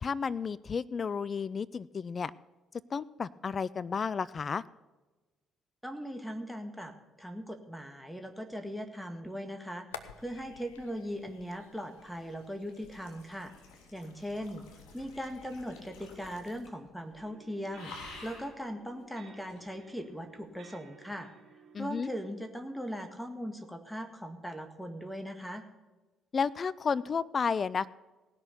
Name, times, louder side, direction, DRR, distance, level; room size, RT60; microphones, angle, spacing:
voice 1, 0.0-2.3 2.9-4.6 21.7-22.1 26.3-27.9, left 5 dB, 45° left, 19 dB, 0.4 m, -32 dB
voice 2, 5.8-6.9 7.2-9.8 10.2-13.5 13.9-14.6 14.9-21.3 21.8-25.6, equal, ahead, 7 dB, 1.9 m, -39 dB
sound 1, 9.9-16.3, left 8 dB, 85° left, 0.7 m, -53 dB
sound 2, 11.2-16.9 17.1-17.4 17.7-18.6 19.5-19.6, left 3 dB, 65° left, 3.5 m, -51 dB
sound 3, 17.1-22.5, right 6 dB, 55° right, 3.5 m, -57 dB
18.0 x 6.3 x 6.7 m, 1.2 s
hypercardioid pair, 50°, 0 cm